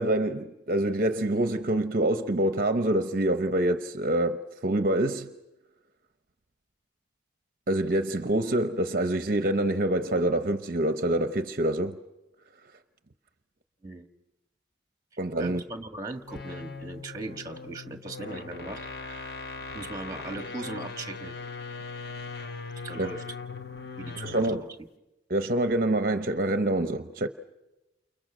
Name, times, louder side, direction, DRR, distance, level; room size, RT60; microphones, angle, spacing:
voice 1, 0.0-5.3 7.7-12.0 15.2-15.6 23.0-23.1 24.2-24.6 25.3-27.3, right 1 dB, 50° right, 0.8 m, -26 dB
voice 2, 15.4-19.3 19.7-21.3 22.8-23.2 24.0-24.6, right 2 dB, 20° right, 1.6 m, -39 dB
sound 1, 16.2-24.7, left 4 dB, 55° left, 1.1 m, -40 dB
29.5 x 29.5 x 6.2 m
head